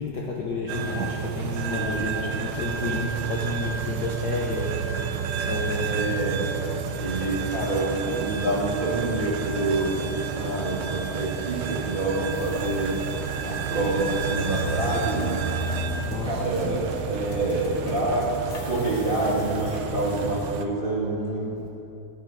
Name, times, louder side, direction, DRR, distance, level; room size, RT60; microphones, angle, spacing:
voice 1, 0.0-6.4 16.0-16.8 21.6-21.7, left 4 dB, 80° left, -2 dB, 0.9 m, -32 dB
Washing machine, 0.7-20.6, right 7 dB, 75° right, 1.5 m, -31 dB
voice 2, 1.7-2.2 5.9-6.5 7.0-13.0 13.4-15.4 16.2-18.3 18.6-21.7, right 2 dB, 20° right, -6 dB, 2.0 m, -27 dB
sound 1, 12.3-20.3, equal, 40° left, 1.6 m, -35 dB
13.5 x 8.7 x 6.1 m, 2.9 s
omnidirectional pair, 3.3 m